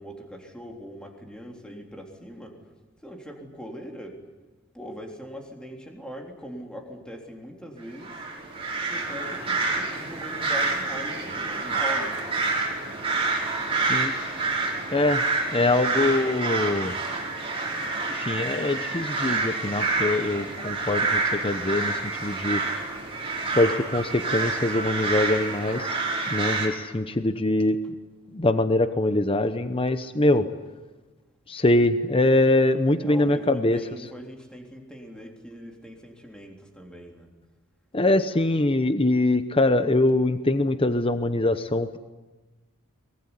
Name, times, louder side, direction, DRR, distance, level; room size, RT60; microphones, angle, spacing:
voice 1, 0.0-2.6 3.0-4.2 4.7-8.2 8.9-12.2 20.3-20.8 32.9-37.3, equal, 5° left, 1 dB, 3.7 m, -41 dB
sound 1, 8.0-26.7, right 3 dB, 25° right, 5.4 m, -28 dB
voice 2, 14.9-15.2 15.5-16.9 18.0-22.6 23.5-26.0 26.3-27.8 28.3-30.5 31.5-33.8 37.9-42.0, left 2 dB, 25° left, 10 dB, 0.9 m, -23 dB
24.0 x 20.5 x 9.9 m, 1.2 s
head